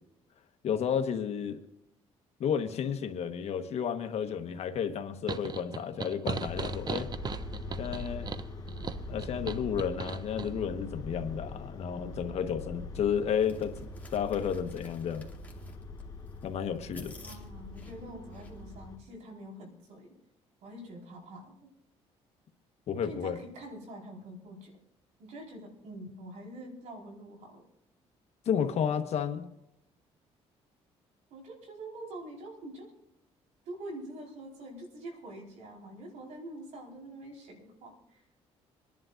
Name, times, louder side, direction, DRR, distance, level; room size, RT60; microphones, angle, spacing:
voice 1, 0.6-1.6 2.4-7.1 7.8-8.3 9.1-15.2 16.4-17.1 22.9-23.4 28.4-29.4, left 8 dB, 65° left, 7 dB, 1.3 m, -32 dB
sound 1, 5.3-10.5, right 5 dB, 35° right, 0.6 m, -37 dB
sound 2, 6.5-19.0, left 2 dB, 35° left, 1.8 m, -42 dB
sound 3, 13.3-18.6, left 3 dB, 15° left, 2.4 m, -54 dB
voice 2, 17.1-20.1 20.6-21.5 23.0-24.7 25.2-27.6 31.3-32.9 33.6-38.2, right 1 dB, 75° right, 0 dB, 4.5 m, -45 dB
26.5 x 11.0 x 2.6 m, 0.86 s
cardioid pair, 95°, 12 cm